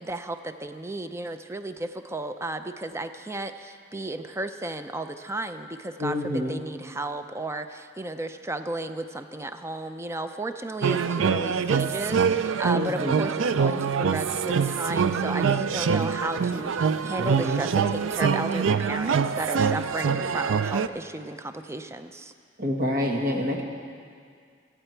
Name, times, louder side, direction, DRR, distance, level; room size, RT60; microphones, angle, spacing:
voice 1, 0.0-22.3, right 2 dB, 15° right, 9 dB, 0.5 m, -34 dB
voice 2, 6.0-6.6 12.7-13.2 22.6-23.6, left 1 dB, 50° right, 1 dB, 1.6 m, -27 dB
sound 1, 10.8-20.9, right 6 dB, 85° right, 0.4 m, -25 dB
24.0 x 9.1 x 4.5 m, 2.2 s
head